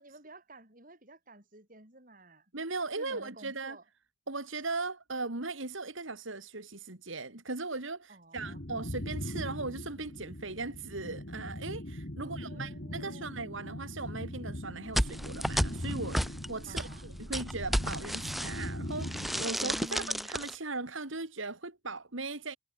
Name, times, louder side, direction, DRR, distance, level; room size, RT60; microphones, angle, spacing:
voice 1, 0.0-2.5 3.0-3.8 8.1-8.6 12.2-13.3 16.7-17.1 19.6-20.3, right 1 dB, 40° right, 7.4 m, -51 dB
voice 2, 2.5-3.8 4.3-22.6, right 3 dB, 70° right, 2.8 m, -38 dB
sound 1, 8.4-19.4, left 1 dB, 50° left, 2.7 m, -40 dB
sound 2, 14.9-18.7 19.0-20.5, equal, ahead, 0.4 m, -33 dB
head